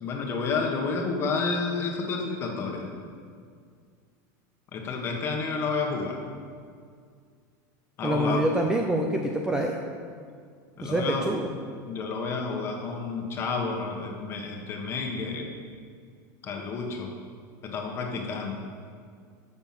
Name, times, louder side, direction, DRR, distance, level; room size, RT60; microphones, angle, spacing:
voice 1, 0.0-2.9 4.7-6.2 8.0-8.4 10.8-11.3 11.9-15.5 16.4-17.1 17.6-18.5, left 4 dB, 25° left, 2 dB, 1.4 m, -30 dB
voice 2, 8.0-9.8 10.8-11.5, right 1 dB, 5° right, 2 dB, 0.5 m, -26 dB
13.0 x 6.9 x 6.0 m, 2.1 s
supercardioid pair, 170°, 10 cm